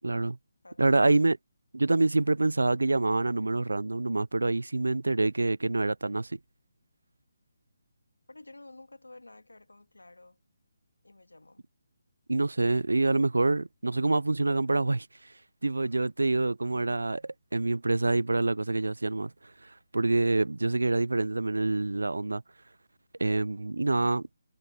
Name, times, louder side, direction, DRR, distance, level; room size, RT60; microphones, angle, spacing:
voice 1, 0.0-0.4 0.8-1.4 1.7-6.4 12.3-15.3 15.6-19.3 19.6-22.4 23.2-24.3, right 2 dB, 80° right, 0.5 m, -26 dB
voice 2, 0.6-1.2 8.3-10.4 11.0-11.7, left 2 dB, 90° left, 2.2 m, -51 dB
figure-of-eight pair, 150°, 0 cm